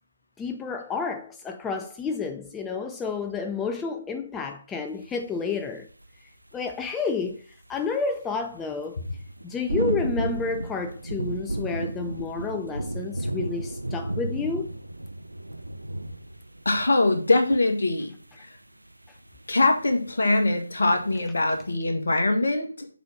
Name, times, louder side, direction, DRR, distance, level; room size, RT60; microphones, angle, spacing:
voice 1, 0.4-5.9 6.5-7.4 7.7-9.0 9.4-14.7, left 5 dB, 10° left, 0.3 m, -30 dB
sound 1, 5.0-5.3 5.7-6.1 6.5-6.6 9.0-17.6 17.8-17.9 18.2-18.6 18.9-20.4 20.8-21.8, right 1 dB, 80° right, 0.6 m, -33 dB
voice 2, 16.7-18.1 18.4-18.6 19.5-22.9, left 2 dB, 55° left, 1.6 m, -23 dB
6.8 x 4.3 x 6.1 m
figure-of-eight pair, 150°, 0 cm